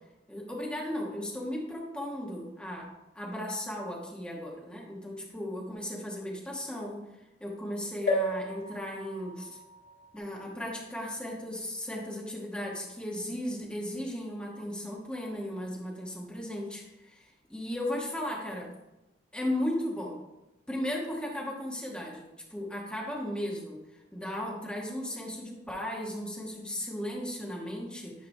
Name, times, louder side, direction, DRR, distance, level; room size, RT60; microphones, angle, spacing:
voice 1, 0.3-2.9 3.1-7.0 7.4-9.6 10.1-18.7 19.3-20.2 20.7-23.8 24.1-28.3, left 1 dB, 5° left, -3 dB, 1.2 m, -36 dB
sound 1, 8.1-11.7 12.3-12.4 12.6-12.7, left 1 dB, 90° left, 1.5 m, -35 dB
9.9 x 5.0 x 2.7 m, 0.98 s
head